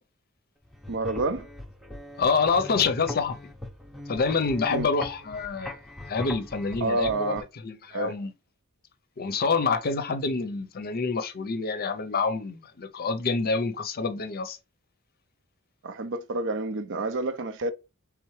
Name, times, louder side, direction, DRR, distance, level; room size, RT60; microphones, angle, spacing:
sound 1, 0.6-7.4, left 1 dB, ahead, 0.6 m, -40 dB
voice 1, 0.9-1.5 4.7-4.9 6.8-7.4 7.9-8.1 15.8-17.7, right 2 dB, 60° right, 0.6 m, -29 dB
voice 2, 2.2-3.5 4.1-5.8 6.1-7.4 7.6-8.3 9.2-14.6, left 4 dB, 45° left, 0.6 m, -27 dB
4.5 x 3.4 x 3.1 m
head